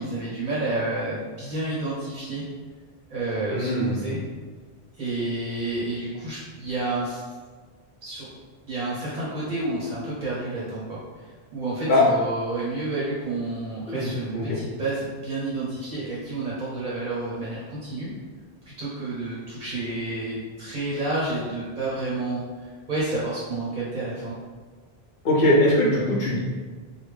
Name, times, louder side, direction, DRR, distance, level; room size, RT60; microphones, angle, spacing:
voice 1, 0.0-2.4 3.1-4.2 5.0-7.2 8.0-8.3 8.6-18.1 18.6-24.3, right 2 dB, 50° right, -7 dB, 0.9 m, -30 dB
voice 2, 3.5-4.1 11.9-12.0 13.9-14.1 14.3-14.6 25.2-26.4, left 1 dB, 60° left, -5 dB, 1.1 m, -21 dB
3.4 x 2.2 x 3.3 m, 1.5 s
omnidirectional pair, 1.1 m